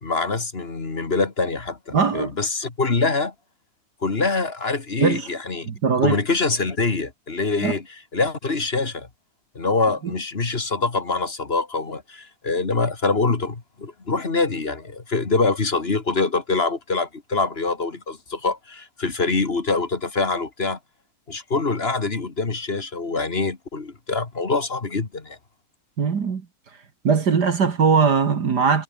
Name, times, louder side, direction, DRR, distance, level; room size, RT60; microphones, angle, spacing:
voice 1, 0.0-3.3 4.0-5.7 6.0-7.8 8.1-9.1 9.5-20.8 21.3-25.4, left 3 dB, 25° left, 1.6 m, -24 dB
voice 2, 1.9-2.3 5.0-5.3 5.7-6.2 7.6-7.7 10.0-10.1 26.0-26.4 27.0-28.8, right 5 dB, 40° right, 1.7 m, -20 dB
omnidirectional pair, 3.6 m